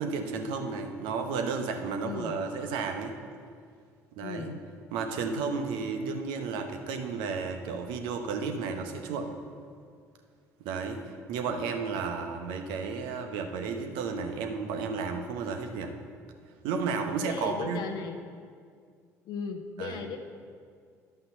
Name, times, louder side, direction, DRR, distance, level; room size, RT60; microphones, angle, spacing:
voice 1, 0.0-3.1 4.2-4.5 4.9-9.4 10.6-15.9 16.6-17.8 19.8-20.0, right 5 dB, 65° right, 5 dB, 1.0 m, -32 dB
voice 2, 2.0-2.4 4.2-4.6 17.2-18.2 19.2-20.3, left 5 dB, 60° left, 5 dB, 0.8 m, -36 dB
11.0 x 5.6 x 6.9 m, 2.1 s
hypercardioid pair, 55°, 8 cm